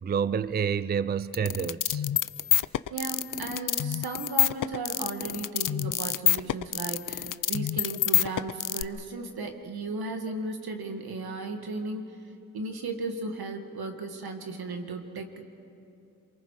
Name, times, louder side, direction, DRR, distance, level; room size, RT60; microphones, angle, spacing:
voice 1, 0.0-2.0, right 7 dB, 30° right, 17 dB, 0.4 m, -28 dB
sound 1, 1.3-8.8, left 9 dB, 60° left, 0.5 m, -26 dB
voice 2, 2.9-12.2 12.5-15.4, right 3 dB, 85° right, 5 dB, 1.7 m, -35 dB
27.0 x 23.5 x 4.8 m, 2.7 s
cardioid pair, 65°, 36 cm